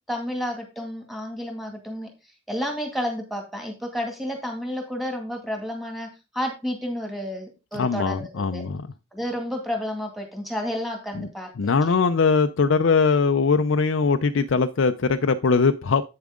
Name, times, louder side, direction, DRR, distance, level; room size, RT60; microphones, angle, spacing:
voice 1, 0.1-2.1 2.5-6.1 6.3-8.6 9.1-11.5 11.9-12.0, equal, ahead, 2.2 m, -31 dB
voice 2, 7.7-8.9 11.2-11.3 11.6-16.0, left 4 dB, 65° left, 0.5 m, -21 dB
8.7 x 7.1 x 3.7 m
head